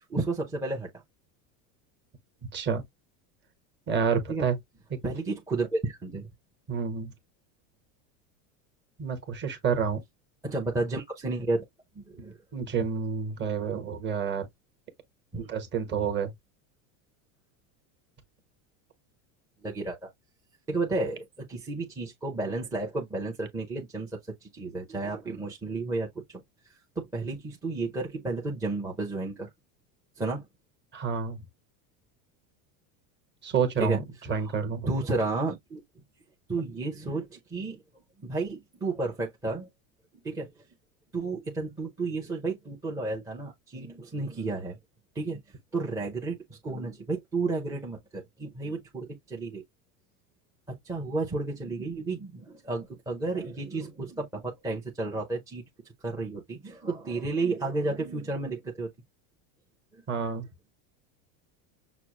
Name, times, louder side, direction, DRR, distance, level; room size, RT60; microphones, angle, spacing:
voice 1, 0.1-0.9 4.3-4.4 5.0-6.3 10.4-11.6 12.0-12.4 15.3-15.5 19.6-20.1 20.7-24.1 24.4-26.1 27.0-29.5 30.2-30.4 33.8-34.0 34.7-35.8 36.5-37.8 38.2-39.7 40.2-40.5 41.1-44.8 45.1-45.4 45.7-49.6 50.8-55.6 56.0-58.9 60.2-60.3, right 3 dB, 10° right, 0.6 m, -32 dB
voice 2, 2.5-2.8 3.9-4.6 4.9-5.0 6.7-7.1 9.0-10.0 12.5-14.5 15.4-16.3 30.9-31.4 33.4-35.0 60.1-60.5, right 6 dB, 25° right, 1.2 m, -29 dB
6.0 x 2.1 x 2.9 m
supercardioid pair, 145°, 42 cm